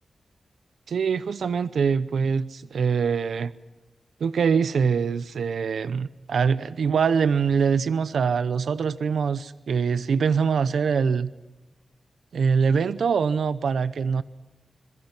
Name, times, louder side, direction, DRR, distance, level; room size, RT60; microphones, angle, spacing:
voice 1, 0.9-3.5 4.2-11.3 12.3-14.2, right 6 dB, 90° right, 14 dB, 0.7 m, -23 dB
27.0 x 22.0 x 6.0 m, 1.1 s
wide cardioid pair, 95°, 0 cm